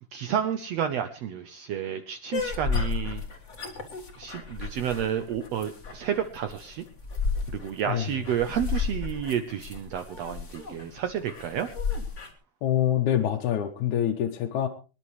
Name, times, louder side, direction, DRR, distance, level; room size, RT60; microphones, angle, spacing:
voice 1, 0.1-3.2 4.2-6.8 7.5-11.7, right 9 dB, 80° right, 9 dB, 1.5 m, -30 dB
sound 1, 2.3-12.3, left 5 dB, 40° left, 1.1 m, -33 dB
voice 2, 12.6-14.7, left 10 dB, 70° left, 1 dB, 2.1 m, -25 dB
24.5 x 10.5 x 3.1 m, 0.33 s
omnidirectional pair, 3.9 m